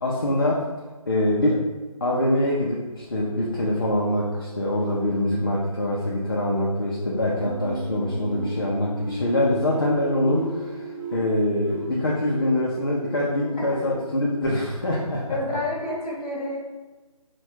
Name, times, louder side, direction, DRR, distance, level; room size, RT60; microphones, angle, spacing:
voice 1, 0.0-0.7 1.1-1.6 2.0-15.4, left 1 dB, 35° left, -4 dB, 0.6 m, -24 dB
sound 1, 7.4-14.5, right 1 dB, 10° right, 1.0 m, -36 dB
voice 2, 15.3-16.6, left 1 dB, 15° left, -9 dB, 1.1 m, -28 dB
4.6 x 2.3 x 4.4 m, 1.3 s
figure-of-eight pair, 165°, 19 cm